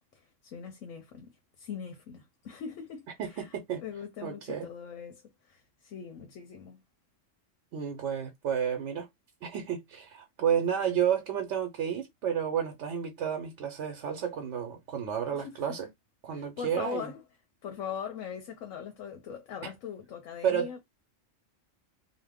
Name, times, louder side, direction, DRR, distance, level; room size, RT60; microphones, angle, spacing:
voice 1, 0.1-1.3 1.6-6.8 15.3-15.6 16.3-17.2 17.6-20.8, left 7 dB, 90° left, 1.1 m, -41 dB
voice 2, 3.2-3.8 4.2-4.7 7.7-9.1 9.4-15.9 16.2-17.1 19.6-19.7 20.4-20.8, right 8 dB, 70° right, 0.9 m, -31 dB
2.8 x 2.0 x 3.4 m
omnidirectional pair, 1.3 m